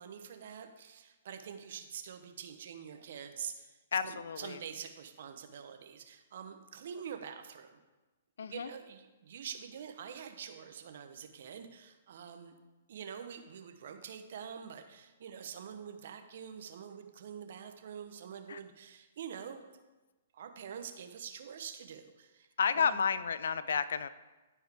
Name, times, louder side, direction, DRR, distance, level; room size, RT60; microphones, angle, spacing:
voice 1, 0.0-7.8 8.5-12.6 12.9-19.6 20.3-22.5 22.7-23.0, right 7 dB, 60° right, 7 dB, 0.9 m, -46 dB
voice 2, 3.9-4.6 8.4-8.7 18.5-18.6 22.6-24.1, left 6 dB, 70° left, 15 dB, 0.4 m, -31 dB
13.0 x 4.6 x 3.5 m, 1.2 s
hypercardioid pair, 125°, 0 cm